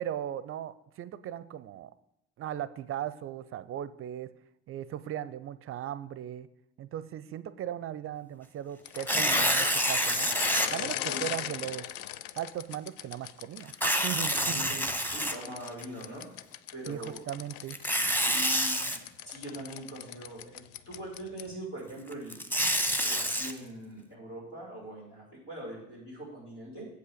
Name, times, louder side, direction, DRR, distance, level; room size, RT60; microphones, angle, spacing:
voice 1, 0.0-1.9 2.4-4.3 4.7-6.5 6.8-10.3 10.7-11.8 12.4-13.7 14.0-14.6 16.9-17.8, right 11 dB, 35° right, 16 dB, 0.5 m, -37 dB
sound 1, 8.8-14.3 15.1-21.6, left 12 dB, 60° left, 0.5 m, -39 dB
Tearing, 8.9-10.7 11.3-11.4 13.7-15.8 17.7-19.0 22.1-23.5, equal, 5° left, 1.0 m, -27 dB
voice 2, 10.8-11.3 14.3-14.8 15.1-16.3 16.7-17.2 18.1-22.4 23.0-26.9, right 1 dB, 90° left, -9 dB, 4.0 m, -42 dB
8.0 x 5.5 x 6.3 m, 0.85 s
figure-of-eight pair, 50°, 36 cm